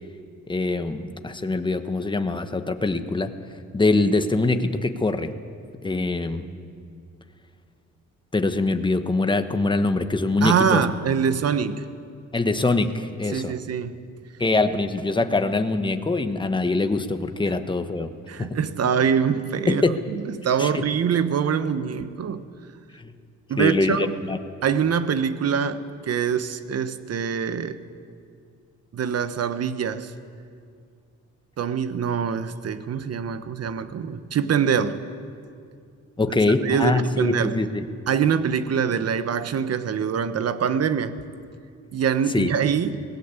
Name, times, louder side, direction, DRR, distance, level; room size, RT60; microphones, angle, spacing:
voice 1, 0.5-5.3 5.8-6.5 8.3-10.8 12.3-13.6 14.4-18.1 18.4-18.6 19.7-20.0 20.6-20.9 22.9-23.1 23.6-24.4 36.2-37.8 42.3-42.5, left 3 dB, 15° left, 8 dB, 1.3 m, -23 dB
voice 2, 10.4-11.8 13.3-13.9 18.3-19.8 20.3-22.4 23.5-24.1 24.6-27.8 28.9-30.1 31.6-35.0 36.6-37.6 38.1-41.1 41.9-43.0, right 7 dB, 55° right, 12 dB, 1.3 m, -24 dB
21.5 x 17.5 x 8.4 m, 2.3 s
cardioid pair, 90°, 30 cm